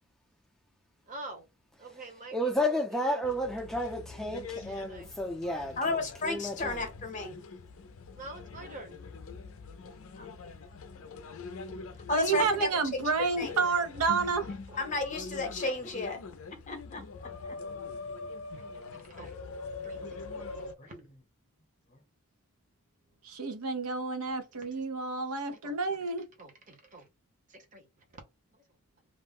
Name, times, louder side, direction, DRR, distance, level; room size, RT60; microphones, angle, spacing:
voice 1, 1.1-1.4 1.8-3.2 4.3-5.1 8.1-8.9 12.8-12.9 13.5-13.6 14.0-14.3 14.7-14.8 18.5-19.3 19.8-20.5 20.8-21.0 25.5-25.7 26.4-27.1 27.5-27.9 28.1-28.2, right 2 dB, 35° right, 0.8 m, -47 dB
voice 2, 2.3-5.8 6.2-6.8, left 1 dB, ahead, 0.4 m, -31 dB
sound 1, 3.2-20.7, left 4 dB, 65° left, 0.4 m, -44 dB
voice 3, 5.8-7.4 10.2-10.3 12.1-12.7 13.0-13.5 14.8-16.2 16.7-17.6 20.8-20.9 21.9-22.0, left 3 dB, 35° left, 0.7 m, -33 dB
voice 4, 12.1-14.4 23.2-26.3, right 4 dB, 85° right, 0.6 m, -30 dB
2.4 x 2.0 x 3.4 m
head